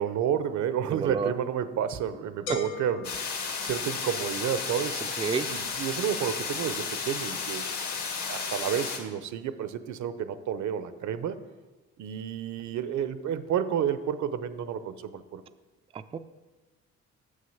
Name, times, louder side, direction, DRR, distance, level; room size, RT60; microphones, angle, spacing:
voice 1, 0.0-3.2 3.6-7.7 8.3-11.4 12.0-15.4, right 9 dB, 70° right, 12 dB, 0.7 m, -30 dB
voice 2, 0.9-1.3 5.2-5.5 15.9-16.2, right 5 dB, 20° right, 9 dB, 0.3 m, -30 dB
sound 1, 2.5-4.3, equal, 90° left, 1.3 m, -39 dB
sound 2, 3.0-9.0, left 5 dB, 70° left, 1.9 m, -33 dB
7.2 x 6.4 x 7.1 m, 1.2 s
cardioid pair, 90°, 30 cm